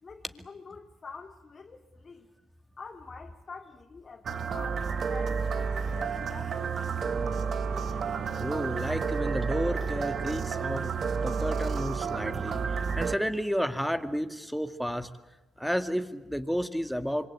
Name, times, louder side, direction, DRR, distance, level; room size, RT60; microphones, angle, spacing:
voice 1, 0.0-2.3 2.8-7.5, left 4 dB, 35° left, -1 dB, 2.9 m, -47 dB
sound 1, 4.2-13.2, right 5 dB, 50° right, 1.5 m, -31 dB
sound 2, 5.0-13.6, right 4 dB, 90° right, 5.9 m, -56 dB
voice 2, 8.4-10.9 11.2-15.1 15.6-17.3, equal, ahead, 8 dB, 2.0 m, -31 dB
26.0 x 25.0 x 8.6 m, 1.1 s
cardioid pair, 90°, 0 cm